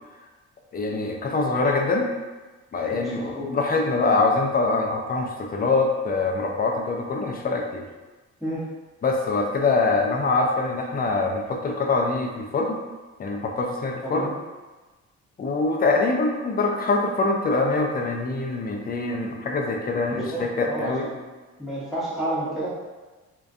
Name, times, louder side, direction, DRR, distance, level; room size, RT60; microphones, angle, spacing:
voice 1, 0.7-2.1 2.7-7.8 9.0-12.8 13.2-14.3 15.4-21.1, left 3 dB, 30° left, 1 dB, 0.4 m, -24 dB
voice 2, 2.9-3.5 8.4-8.6 14.0-14.3 20.1-21.2 21.6-22.7, right 1 dB, ahead, -10 dB, 1.0 m, -30 dB
2.3 x 2.2 x 2.5 m, 1.2 s
cardioid pair, 90°, 30 cm